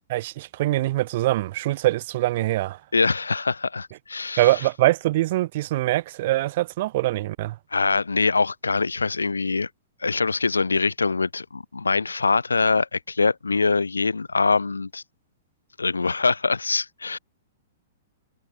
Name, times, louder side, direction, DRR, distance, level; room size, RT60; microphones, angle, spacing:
voice 1, 0.1-2.8 4.4-7.6, right 16 dB, 45° right, 0.3 m, -23 dB
voice 2, 2.9-4.6 7.7-9.7 10.0-15.0 15.8-17.2, left 4 dB, 75° left, 0.5 m, -23 dB
figure-of-eight pair, 110°, 0 cm